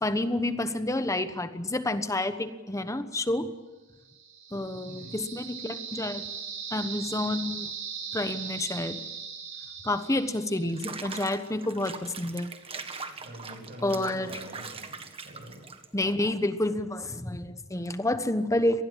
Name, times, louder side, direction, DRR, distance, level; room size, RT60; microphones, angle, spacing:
voice 1, 0.0-3.5 4.5-6.2 6.7-7.7 8.1-9.0 9.8-12.5 13.8-14.3 15.9-18.8, left 1 dB, 15° left, 10 dB, 1.1 m, -29 dB
sound 1, 4.1-11.0, right 6 dB, 80° right, 7.3 m, -39 dB
voice 2, 4.9-5.2 13.1-15.6, equal, 45° right, 3 dB, 7.6 m, -45 dB
Water / Bathtub (filling or washing), 10.6-16.1, right 5 dB, 30° right, 1.6 m, -41 dB
24.5 x 19.5 x 7.6 m, 1.2 s
head